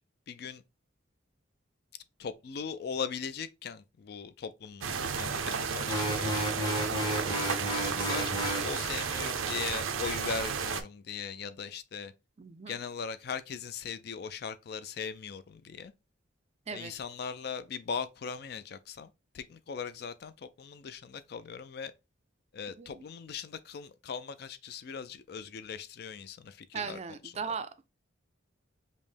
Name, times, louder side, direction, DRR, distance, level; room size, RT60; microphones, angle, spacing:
voice 1, 0.3-0.6 2.2-6.7 7.0-7.4 8.0-12.1 12.7-15.9 16.7-19.1 19.3-21.9 22.5-27.0, left 6 dB, 50° left, 0.4 m, -39 dB
sound 1, 4.8-10.8, right 6 dB, 90° right, 0.5 m, -33 dB
sound 2, 5.9-8.7, equal, 20° left, 0.8 m, -32 dB
voice 2, 12.4-12.8 16.7-16.9 22.8-23.1 26.7-27.9, right 5 dB, 35° right, 0.4 m, -38 dB
5.3 x 2.1 x 3.2 m
head